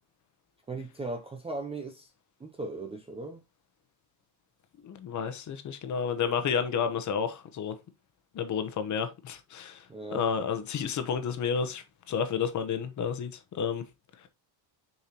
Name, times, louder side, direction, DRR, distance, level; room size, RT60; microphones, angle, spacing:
voice 1, 0.7-2.1 2.4-3.4 9.9-10.3, right 2 dB, 10° right, 0.5 m, -37 dB
voice 2, 4.8-7.8 8.3-13.8, left 7 dB, 35° left, 1.0 m, -31 dB
6.9 x 4.6 x 2.9 m
cardioid pair, 160°, 49 cm